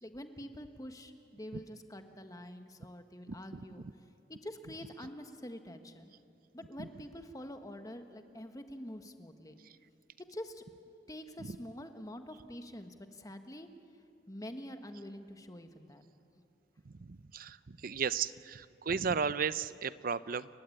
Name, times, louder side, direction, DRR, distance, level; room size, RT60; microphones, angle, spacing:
voice 1, 0.0-3.8 4.3-6.1 6.5-9.6 10.3-10.7 11.1-13.7 14.3-16.0 16.3-16.4, left 1 dB, 20° left, 7 dB, 1.4 m, -46 dB
voice 2, 3.3-3.7 6.8-6.9 16.9-20.5, right 6 dB, 55° right, 16 dB, 0.6 m, -35 dB
30.0 x 15.5 x 10.0 m, 2.6 s
head